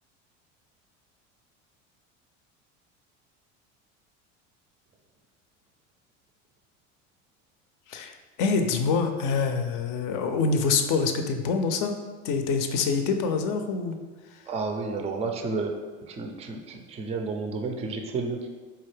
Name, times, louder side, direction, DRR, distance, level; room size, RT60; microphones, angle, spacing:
voice 1, 7.9-12.0 12.2-13.9, left 4 dB, 55° left, 6 dB, 0.5 m, -26 dB
voice 2, 14.5-15.7 16.0-18.5, right 4 dB, 20° right, 4 dB, 0.3 m, -31 dB
4.1 x 2.3 x 3.2 m, 1.3 s
hypercardioid pair, 80°, 38 cm